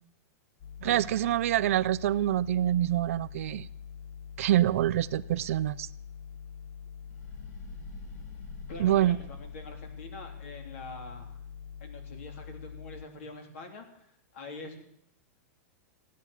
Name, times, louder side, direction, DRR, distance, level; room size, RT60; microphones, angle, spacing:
sound 1, 0.6-13.1, left 8 dB, 25° left, 0.7 m, -45 dB
voice 1, 0.8-3.7 4.4-5.9 8.8-9.2, right 13 dB, 55° right, 0.5 m, -26 dB
sound 2, 7.0-10.3, left 1 dB, 70° left, 5.1 m, -48 dB
voice 2, 8.7-11.4 11.8-14.1 14.3-14.8, left 2 dB, 55° left, 3.2 m, -44 dB
16.0 x 9.3 x 7.2 m
supercardioid pair, 170°, 9 cm